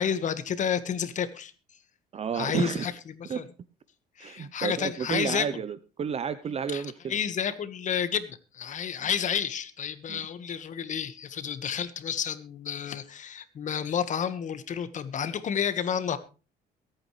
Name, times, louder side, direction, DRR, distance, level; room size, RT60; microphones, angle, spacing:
voice 1, 0.0-1.5 2.3-3.4 4.2-5.5 6.7-6.8 7.1-16.2, left 8 dB, 45° left, 13 dB, 1.5 m, -30 dB
voice 2, 2.1-2.9 3.3-3.4 4.2-7.1 10.1-10.2, right 7 dB, 35° right, 14 dB, 0.7 m, -31 dB
23.0 x 9.0 x 3.2 m, 0.33 s
cardioid pair, 110°, 17 cm